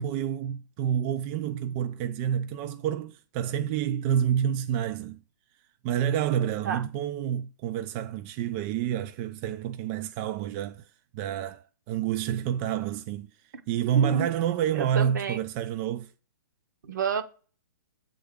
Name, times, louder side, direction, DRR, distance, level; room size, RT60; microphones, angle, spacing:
voice 1, 0.0-5.2 5.8-10.9 11.1-13.3 13.7-16.1, right 9 dB, 30° right, 0.3 m, -28 dB
voice 2, 13.9-14.3 14.7-15.4 16.9-17.2, right 6 dB, 65° right, 0.9 m, -29 dB
7.6 x 3.6 x 3.6 m
hypercardioid pair, 130°, 11 cm